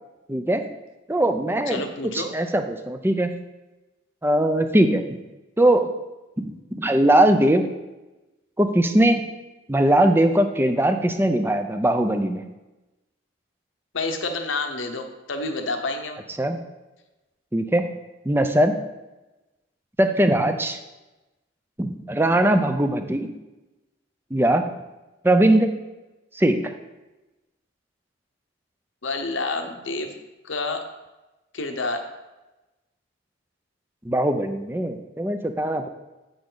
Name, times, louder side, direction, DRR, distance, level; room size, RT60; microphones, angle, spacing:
voice 1, 0.3-0.7 1.1-1.8 2.1-3.3 4.2-5.0 5.6-5.9 6.4-7.6 8.6-9.2 9.7-12.4 16.4-16.6 17.5-17.8 18.2-18.7 20.0-20.8 21.8-23.3 24.3-24.6 25.2-25.7 26.3-26.7 34.0-35.9, right 1 dB, 10° right, 7 dB, 0.5 m, -20 dB
voice 2, 1.7-2.3 13.9-16.2 29.0-30.1 30.4-30.9 31.5-32.1, left 3 dB, 75° left, 5 dB, 1.0 m, -28 dB
8.4 x 6.9 x 4.0 m, 1.1 s
head